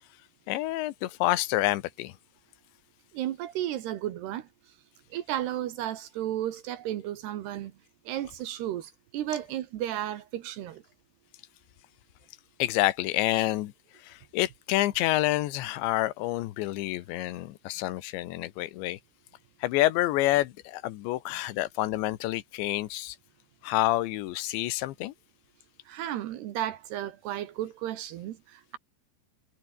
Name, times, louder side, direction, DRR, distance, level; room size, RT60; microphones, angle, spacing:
voice 1, 0.5-2.1 12.6-13.7 14.0-19.0 19.6-23.2 23.6-25.1, left 16 dB, 80° left, 3.4 m, -28 dB
voice 2, 3.1-4.5 5.1-7.7 8.1-10.8 25.9-28.8, right 12 dB, 75° right, 3.3 m, -33 dB
omnidirectional pair, 5.1 m